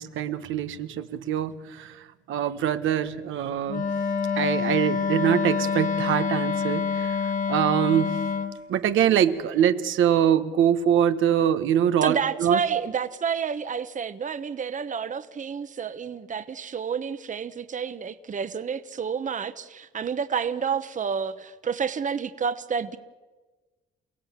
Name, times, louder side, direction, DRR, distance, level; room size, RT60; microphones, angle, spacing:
voice 1, 0.0-3.9 4.4-8.2 8.7-12.8, right 9 dB, 80° right, 1.3 m, -24 dB
Wind instrument woodwind instrument, 3.7-8.6, left 6 dB, 40° left, 2.1 m, -26 dB
voice 2, 12.0-23.0, right 6 dB, 40° right, 1.1 m, -29 dB
29.0 x 16.5 x 7.4 m
cardioid pair, 90°, 20 cm